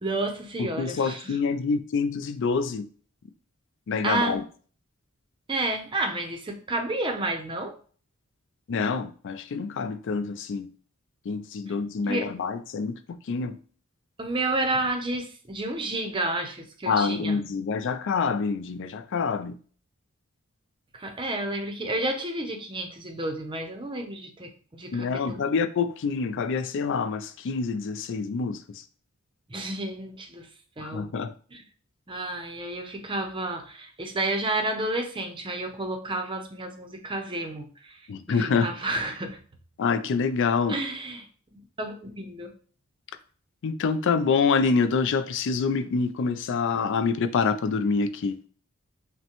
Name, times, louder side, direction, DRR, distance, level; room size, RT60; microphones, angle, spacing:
voice 1, 0.0-1.4 4.0-4.4 5.5-7.7 12.0-12.3 14.2-17.4 20.9-25.4 29.5-30.5 30.8-31.1 31.5-31.6 32.1-38.0 38.4-39.4 40.7-41.3 41.5-42.5, right 2 dB, 25° right, 0.6 m, -31 dB
voice 2, 0.6-2.9 3.9-4.4 8.7-10.7 11.3-13.6 16.9-19.6 24.9-28.8 30.8-31.3 38.1-38.7 39.8-40.8 43.6-48.4, left 5 dB, 60° left, 0.4 m, -26 dB
5.6 x 2.1 x 2.9 m
head